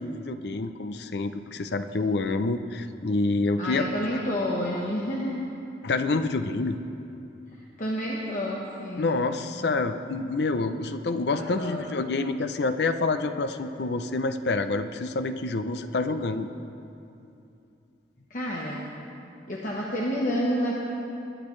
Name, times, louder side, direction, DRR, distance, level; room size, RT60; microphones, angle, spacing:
voice 1, 0.0-3.8 5.8-6.8 9.0-16.5, left 3 dB, 65° left, 9 dB, 0.5 m, -27 dB
voice 2, 3.6-5.5 7.5-9.2 11.3-11.9 18.3-18.8 19.5-20.7, equal, 45° left, -4 dB, 1.1 m, -29 dB
20.5 x 10.0 x 3.2 m, 2.7 s
head